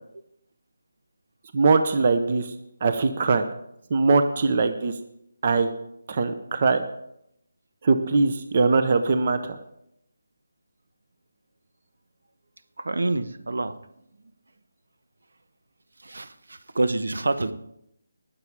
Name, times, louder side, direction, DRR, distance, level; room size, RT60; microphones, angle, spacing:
voice 1, 1.5-2.5 2.8-3.4 3.9-4.9 5.4-5.7 6.1-6.8 7.8-9.4, right 4 dB, 25° right, 9 dB, 0.7 m, -21 dB
voice 2, 12.8-13.7 16.0-17.5, right 2 dB, 85° right, 11 dB, 1.1 m, -27 dB
19.5 x 7.1 x 4.7 m, 0.76 s
hypercardioid pair, 180°, 0 cm